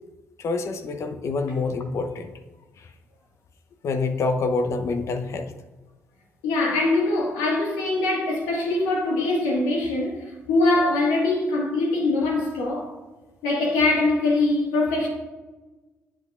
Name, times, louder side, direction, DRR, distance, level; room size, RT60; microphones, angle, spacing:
voice 1, 0.4-2.3 2.8-2.9 3.8-5.5, left 3 dB, 60° left, 0.7 m, -26 dB
voice 2, 6.4-12.9 13.4-15.1, left 2 dB, 85° left, 1.7 m, -23 dB
8.5 x 7.7 x 2.4 m
hypercardioid pair, 55°, 6 cm